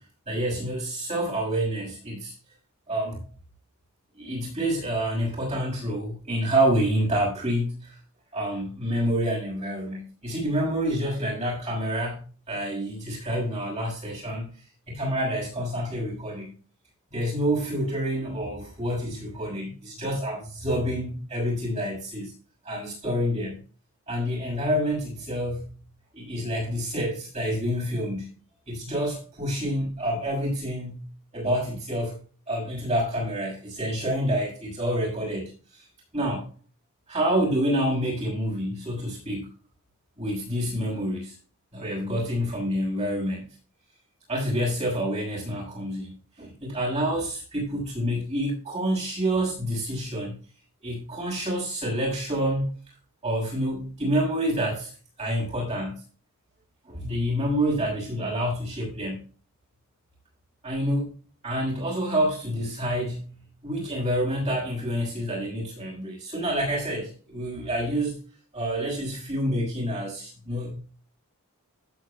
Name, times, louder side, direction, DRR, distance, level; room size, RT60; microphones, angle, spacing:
voice 1, 0.3-2.3 2.9-3.3 4.1-8.0 8.3-14.5 14.9-16.5 17.1-22.3 22.6-23.6 24.1-25.7 26.1-28.3 28.7-31.0 31.3-32.2 32.5-35.8 36.1-36.5 37.1-39.5 40.2-41.3 41.7-43.5 44.3-50.4 50.8-52.7 53.2-54.9 55.2-56.0 56.9-59.2 60.6-61.1 61.4-68.2 68.5-70.7, equal, 30° right, 6.4 m, -28 dB
16.5 x 8.9 x 2.4 m
head